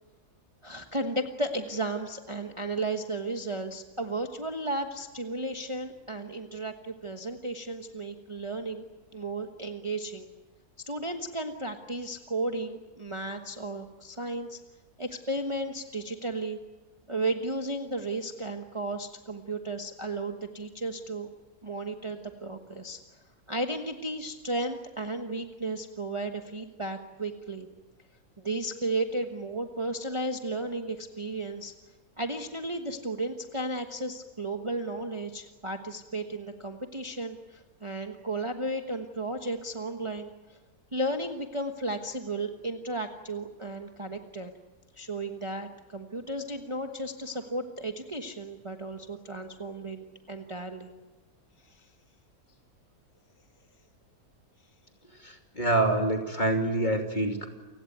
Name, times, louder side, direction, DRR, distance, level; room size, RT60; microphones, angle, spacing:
voice 1, 0.6-8.8 9.1-10.3 10.9-14.6 15.0-16.6 17.1-21.3 21.6-23.0 23.5-27.7 28.4-31.7 32.2-40.6 40.9-44.5 45.0-50.9 51.7-51.8, right 2 dB, 20° right, 5 dB, 1.2 m, -34 dB
voice 2, 55.1-57.5, right 2 dB, 30° left, 3 dB, 2.9 m, -26 dB
29.0 x 17.0 x 9.4 m, 1.2 s
omnidirectional pair, 1.7 m